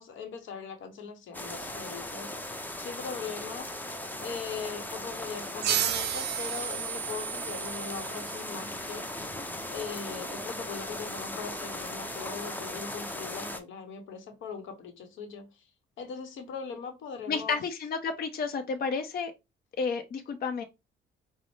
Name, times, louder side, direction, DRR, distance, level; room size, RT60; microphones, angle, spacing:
voice 1, 0.0-2.3 2.8-3.7 4.2-9.1 9.7-15.5 16.0-17.6, left 5 dB, 75° left, 0.8 m, -40 dB
sound 1, 1.3-13.6, left 1 dB, 10° left, 0.6 m, -38 dB
sound 2, 5.6-8.9, right 11 dB, 60° right, 0.4 m, -33 dB
voice 2, 17.3-19.3 19.8-20.6, left 5 dB, 50° left, 0.6 m, -31 dB
5.1 x 2.0 x 3.1 m
cardioid pair, 90°, 20 cm